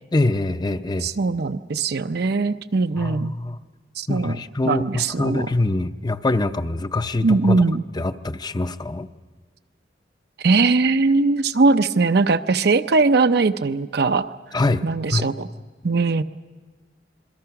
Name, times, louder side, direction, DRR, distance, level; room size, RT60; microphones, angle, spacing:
voice 1, 0.1-1.1 3.0-3.6 4.1-7.6 8.0-9.1 14.5-14.8 15.1-15.3, left 2 dB, 25° left, 10 dB, 0.6 m, -24 dB
voice 2, 1.0-3.3 4.0-4.4 4.6-5.5 7.2-7.8 10.4-14.3 14.8-15.5 15.8-16.2, right 3 dB, 65° right, 10 dB, 0.6 m, -20 dB
27.0 x 22.5 x 5.9 m, 1.4 s
head